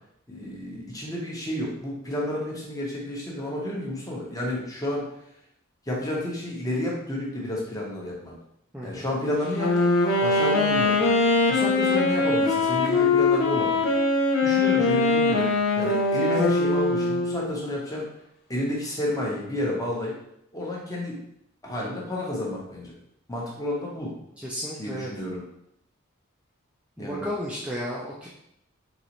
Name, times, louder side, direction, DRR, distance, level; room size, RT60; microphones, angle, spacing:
voice 1, 0.3-5.1 5.9-8.4 8.8-11.1 11.5-13.9 14.4-18.1 18.5-20.2 20.5-21.2 21.6-22.9 23.3-24.1 24.8-25.4 27.0-27.3, left 1 dB, 15° left, -4 dB, 0.9 m, -31 dB
voice 2, 8.7-9.1 24.4-25.1 27.0-28.4, equal, 5° right, -6 dB, 0.4 m, -33 dB
Wind instrument woodwind instrument, 9.5-17.6, left 3 dB, 70° left, 0.6 m, -22 dB
4.0 x 3.0 x 3.0 m, 0.77 s
head